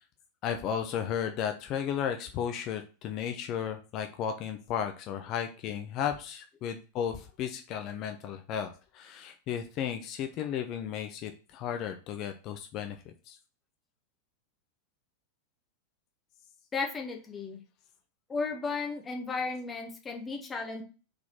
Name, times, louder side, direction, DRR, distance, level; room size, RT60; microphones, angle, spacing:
voice 1, 0.4-13.0 13.3-13.4, left 8 dB, 40° left, 6 dB, 0.7 m, -34 dB
voice 2, 16.7-17.6 18.3-20.8, left 4 dB, 15° left, 2 dB, 1.3 m, -34 dB
4.8 x 4.1 x 5.6 m, 0.35 s
figure-of-eight pair, 90°, 0 cm